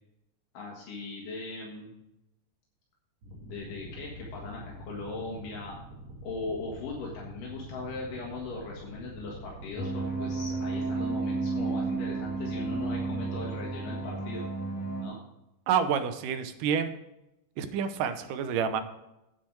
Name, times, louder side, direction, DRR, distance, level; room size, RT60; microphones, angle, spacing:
voice 1, 0.6-1.9 3.4-5.8 6.2-14.4 15.0-15.2, left 3 dB, 85° left, -3 dB, 3.4 m, -39 dB
sound 1, 3.2-14.3, equal, 55° right, 3.5 m, -46 dB
sound 2, 9.8-15.0, right 3 dB, 60° left, 3.3 m, -32 dB
voice 2, 15.7-16.9 17.6-18.8, right 7 dB, 85° right, 9 dB, 2.5 m, -28 dB
9.7 x 8.6 x 4.7 m, 0.88 s
omnidirectional pair, 3.7 m